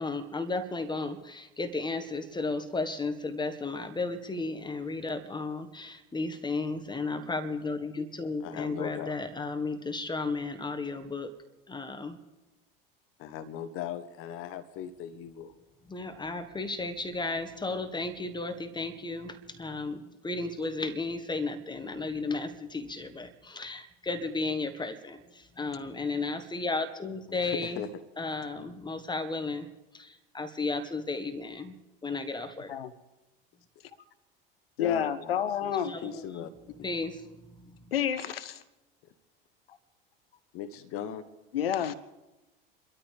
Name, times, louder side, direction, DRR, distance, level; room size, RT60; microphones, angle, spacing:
voice 1, 0.0-11.3 11.7-12.2 15.9-27.8 28.2-29.7 29.9-31.7 32.0-32.7 35.8-36.5 36.8-37.2 37.6-37.7, left 3 dB, 15° left, 7 dB, 1.5 m, -34 dB
voice 2, 8.4-9.2 13.2-15.5 27.3-27.9 34.8-35.7 36.0-36.5 36.8-36.9 40.5-41.2, left 9 dB, 50° left, 12 dB, 1.1 m, -38 dB
voice 3, 34.8-35.9 37.9-38.6 41.5-41.9, left 9 dB, 80° left, 16 dB, 0.8 m, -29 dB
29.0 x 13.5 x 3.5 m, 1.0 s
hypercardioid pair, 75°, 29 cm